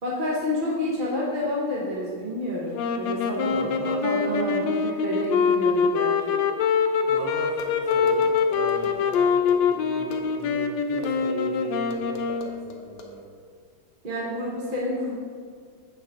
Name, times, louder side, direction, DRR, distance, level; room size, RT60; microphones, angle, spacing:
voice 1, 0.0-6.4 14.0-15.1, left 1 dB, 35° right, -5 dB, 1.0 m, -29 dB
sound 1, 2.7-12.7, left 6 dB, 80° left, 1.2 m, -24 dB
voice 2, 3.5-4.0 6.9-13.2, right 3 dB, 75° right, -4 dB, 1.5 m, -37 dB
sound 2, 7.6-9.6 10.1-10.2 11.0-11.1 11.9-13.1, left 4 dB, 60° left, 1.0 m, -39 dB
8.8 x 5.2 x 3.6 m, 2.1 s
omnidirectional pair, 2.1 m